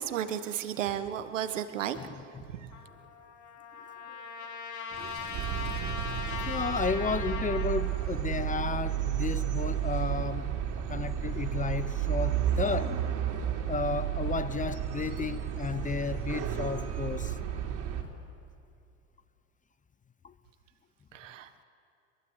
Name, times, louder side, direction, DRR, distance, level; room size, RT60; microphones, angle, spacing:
voice 1, 0.0-2.0 2.5-2.7 21.1-21.6, right 10 dB, 90° right, 1.5 m, -33 dB
Trumpet, 2.7-7.8, left 5 dB, 55° left, 3.3 m, -39 dB
Water / Sink (filling or washing), 4.9-6.7, right 7 dB, 35° right, 2.1 m, -46 dB
sound 1, 5.3-18.0, right 10 dB, 55° right, 3.5 m, -32 dB
voice 2, 6.5-13.0 13.7-17.4 20.2-20.3, left 5 dB, 20° left, 0.8 m, -33 dB
23.0 x 22.5 x 8.2 m
hypercardioid pair, 85°, 37 cm